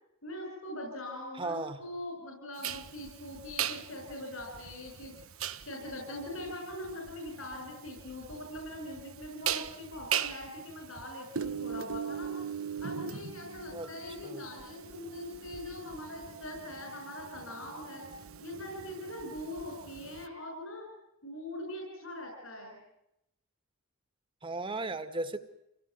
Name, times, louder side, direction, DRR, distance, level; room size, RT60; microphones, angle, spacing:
voice 1, 0.2-5.1 5.7-12.3 12.8-18.1 18.4-20.9 21.2-22.8, left 1 dB, 75° left, 1 dB, 6.9 m, -42 dB
voice 2, 1.3-1.9 13.7-13.9 14.2-14.4 24.4-25.4, right 2 dB, 25° right, 10 dB, 1.9 m, -36 dB
sound 1, 2.6-20.3, right 8 dB, 90° right, 1.4 m, -39 dB
27.0 x 18.0 x 9.3 m, 0.84 s
head